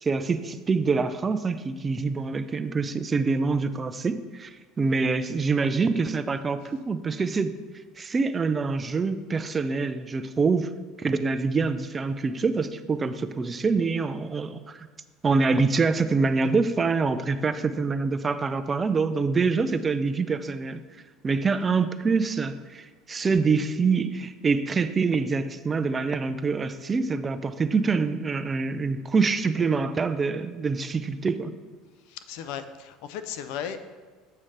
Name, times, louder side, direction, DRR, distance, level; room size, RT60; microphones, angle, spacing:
voice 1, 0.0-7.5 8.0-10.7 11.0-14.9 15.2-20.8 21.2-31.5, right 4 dB, 25° right, 12 dB, 0.3 m, -25 dB
voice 2, 32.0-33.8, left 9 dB, 75° left, 11 dB, 0.4 m, -36 dB
7.6 x 3.2 x 5.7 m, 1.4 s
supercardioid pair, 110°, 0 cm